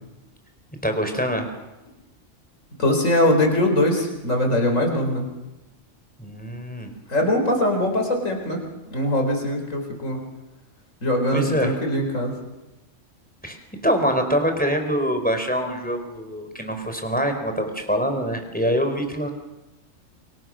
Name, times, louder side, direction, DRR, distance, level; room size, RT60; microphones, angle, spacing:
voice 1, 0.8-1.5 6.2-6.9 11.3-11.8 13.4-13.6 13.8-19.3, equal, 5° left, 5 dB, 4.0 m, -24 dB
voice 2, 2.8-5.3 7.1-8.6 8.9-10.2 11.0-12.4, left 1 dB, 85° left, 3 dB, 5.0 m, -22 dB
28.5 x 23.0 x 6.4 m, 1.0 s
omnidirectional pair, 1.3 m